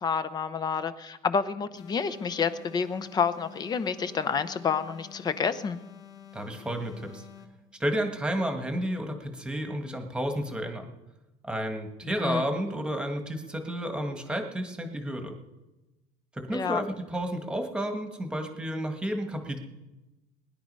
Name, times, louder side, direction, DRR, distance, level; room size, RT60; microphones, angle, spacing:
voice 1, 0.0-5.8 12.2-12.4 16.5-16.8, left 6 dB, 25° left, 14 dB, 0.7 m, -29 dB
sound 1, 1.8-7.7, left 9 dB, 50° left, 1.9 m, -49 dB
voice 2, 6.3-7.2 7.8-10.9 11.4-15.4 16.3-19.6, equal, 5° right, 5 dB, 1.5 m, -31 dB
20.5 x 10.5 x 5.4 m, 1.1 s
cardioid pair, 155°, 16 cm